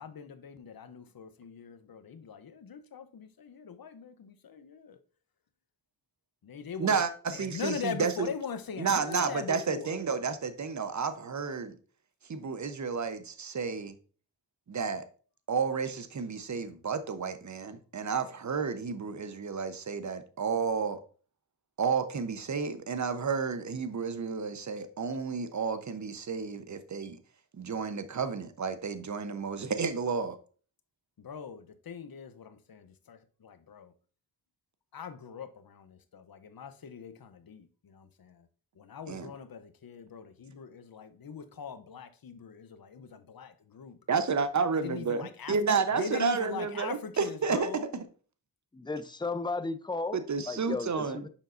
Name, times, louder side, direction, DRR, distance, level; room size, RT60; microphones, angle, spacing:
voice 1, 0.0-5.0 6.4-7.0 7.3-10.0 31.2-33.9 34.9-38.5 38.7-44.0 44.7-45.6 45.9-47.9, left 6 dB, 55° left, 0.9 m, -41 dB
voice 2, 6.8-8.3 8.8-11.8 12.3-14.0 14.7-15.0 15.5-21.0 21.8-27.2 27.5-30.4 39.1-39.3 44.1-47.7 50.1-51.2, right 5 dB, 40° right, 0.9 m, -31 dB
voice 3, 48.7-51.3, left 3 dB, 10° left, 0.6 m, -35 dB
7.2 x 5.3 x 2.6 m
cardioid pair, 60°, 43 cm